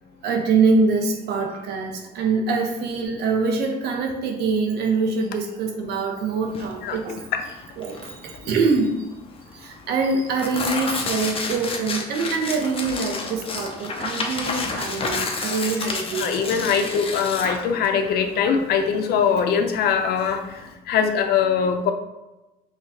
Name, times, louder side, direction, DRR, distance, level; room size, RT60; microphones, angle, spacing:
voice 1, 0.2-7.3 7.8-9.1 9.5-16.5, right 4 dB, 75° right, 2 dB, 0.9 m, -24 dB
Tearing, 6.5-20.7, left 3 dB, 35° left, 0.7 m, -31 dB
voice 2, 16.2-21.9, left 7 dB, 70° left, 6 dB, 0.6 m, -22 dB
4.9 x 2.3 x 4.1 m, 1.0 s
cardioid pair, 110°, 17 cm